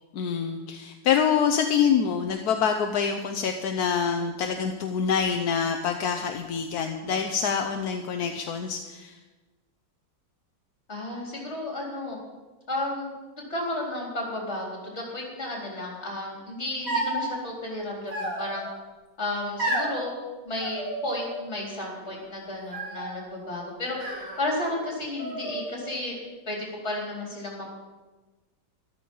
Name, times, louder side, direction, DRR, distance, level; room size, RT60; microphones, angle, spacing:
voice 1, 0.1-9.2, left 7 dB, 60° left, 5 dB, 1.2 m, -26 dB
voice 2, 10.9-12.2 12.7-18.7 19.2-20.1 20.4-26.2 26.5-27.7, left 1 dB, 30° left, -2 dB, 4.4 m, -33 dB
sound 1, 16.9-17.3 18.1-18.8 19.6-20.0 20.6-21.4 21.7-22.3 22.7-23.2 23.9-24.9 25.2-25.9, right 1 dB, 45° right, 3.5 m, -32 dB
13.5 x 13.0 x 5.5 m, 1.2 s
omnidirectional pair, 2.2 m